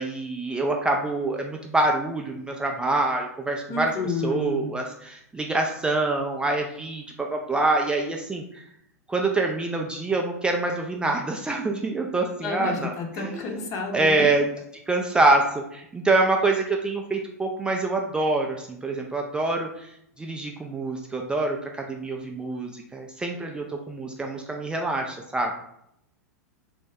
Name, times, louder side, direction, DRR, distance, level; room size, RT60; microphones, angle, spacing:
voice 1, 0.0-3.9 4.2-8.6 9.1-13.6 13.9-14.5 14.9-25.5, right 2 dB, 10° right, 1 dB, 0.3 m, -26 dB
voice 2, 3.7-4.7 12.4-14.3, left 3 dB, 40° left, 2 dB, 0.7 m, -30 dB
3.4 x 2.0 x 3.3 m, 0.74 s
figure-of-eight pair, 95°, 9 cm